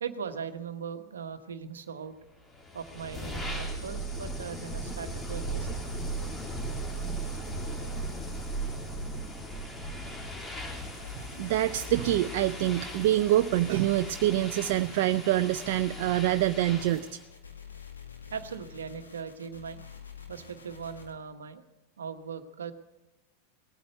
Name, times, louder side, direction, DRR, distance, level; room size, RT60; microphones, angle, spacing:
voice 1, 0.0-2.1 2.7-5.8 18.3-19.8 20.3-21.6 22.0-22.7, right 6 dB, 80° right, 8 dB, 1.1 m, -39 dB
sound 1, 2.5-17.1, right 1 dB, 20° left, 2.8 m, -37 dB
sound 2, 10.8-21.1, left 7 dB, 85° left, 1.9 m, -48 dB
voice 2, 11.4-17.1, right 14 dB, 60° right, 9 dB, 0.5 m, -26 dB
19.0 x 9.3 x 7.9 m, 1.0 s
hypercardioid pair, 90°, 0 cm